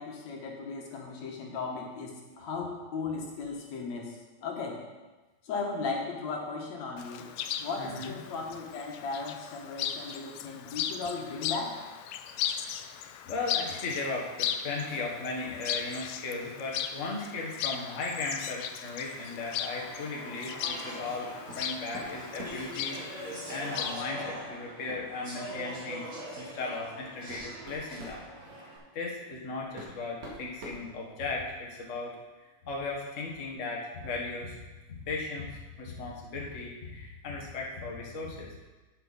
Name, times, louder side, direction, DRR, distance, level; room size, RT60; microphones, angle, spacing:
voice 1, 0.0-4.8 5.4-11.8, left 4 dB, 65° left, 0 dB, 2.5 m, -36 dB
Chirp tweet, 7.0-24.1, left 9 dB, 80° left, 1.5 m, -37 dB
voice 2, 7.8-8.1 12.6-12.7 13.2-21.3 21.5-23.0 23.5-26.0 26.3-28.2 28.9-32.2 32.6-34.6 34.9-38.6, left 3 dB, 35° left, -2 dB, 1.3 m, -36 dB
Speech / Chatter, 19.4-28.8, right 1 dB, 40° right, 3.4 m, -42 dB
sound 1, 21.5-21.7 21.9-22.7 24.3-24.4 24.9-25.0 25.5-25.7 26.5-26.6 27.1-28.2 29.3-29.4 29.8-31.5, equal, 60° right, 3.2 m, -45 dB
11.0 x 9.2 x 4.2 m, 1.2 s
omnidirectional pair, 3.5 m